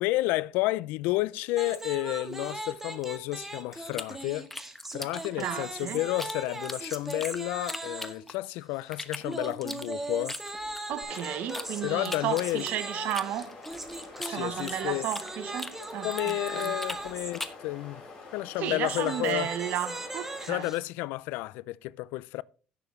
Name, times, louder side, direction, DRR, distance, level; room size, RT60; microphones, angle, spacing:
voice 1, 0.0-4.5 4.9-10.4 11.8-12.6 14.2-15.1 16.0-18.0 18.3-19.5 20.5-22.4, left 19 dB, 80° left, 0.3 m, -31 dB
sound 1, 1.5-8.3 9.2-17.3 18.5-20.8, right 2 dB, 10° right, 1.5 m, -39 dB
sound 2, 3.9-6.3 6.6-8.5 8.9-11.7 12.0-15.3 15.6-17.7, left 2 dB, 10° left, 1.0 m, -40 dB
voice 2, 5.4-6.0 10.9-13.6 14.3-16.7 18.6-20.7, right 11 dB, 60° right, 0.9 m, -33 dB
sound 3, 11.0-20.7, left 3 dB, 35° left, 6.2 m, -47 dB
16.5 x 6.8 x 3.1 m
cardioid pair, 135°, 3 cm